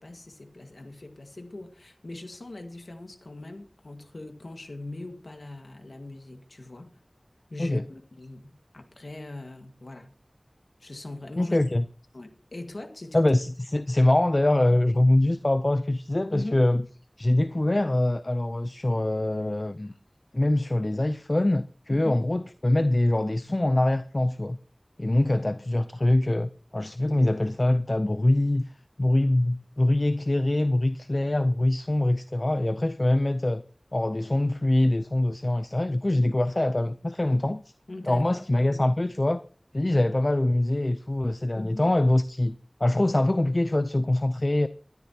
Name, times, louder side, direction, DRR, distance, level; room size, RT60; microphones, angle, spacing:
voice 1, 0.0-6.9 7.5-10.1 10.8-11.6 12.1-13.2 16.3-16.6 21.9-22.2 37.9-38.4 41.6-41.9, left 2 dB, 85° left, 1.8 m, -41 dB
voice 2, 11.4-11.8 13.1-16.8 17.2-19.9 20.3-24.6 25.0-28.6 29.0-33.6 33.9-37.6 38.0-39.4 39.7-44.7, left 1 dB, 45° left, 0.6 m, -24 dB
19.5 x 13.0 x 2.9 m
wide cardioid pair, 40°, 0 cm